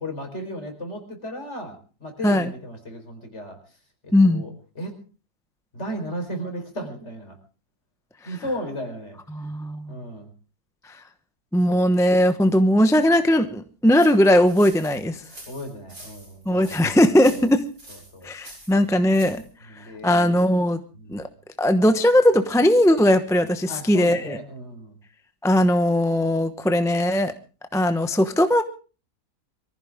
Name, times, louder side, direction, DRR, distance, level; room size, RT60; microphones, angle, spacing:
voice 1, 0.0-3.6 4.0-5.0 5.7-7.4 8.2-9.2 9.9-10.3 11.7-12.0 15.5-17.5 17.9-18.3 18.9-19.0 19.6-20.4 20.9-21.2 23.7-25.0, equal, 45° left, 4 dB, 4.7 m, -35 dB
voice 2, 4.1-4.4 9.3-9.9 11.5-15.2 16.5-17.6 18.2-19.4 20.0-20.8 21.1-21.3 21.6-24.4 25.4-27.3 27.7-28.6, left 1 dB, 5° left, 8 dB, 0.7 m, -19 dB
sound 1, 13.9-19.5, right 1 dB, 80° right, 8.3 m, -46 dB
24.0 x 15.0 x 3.6 m, 0.37 s
omnidirectional pair, 1.7 m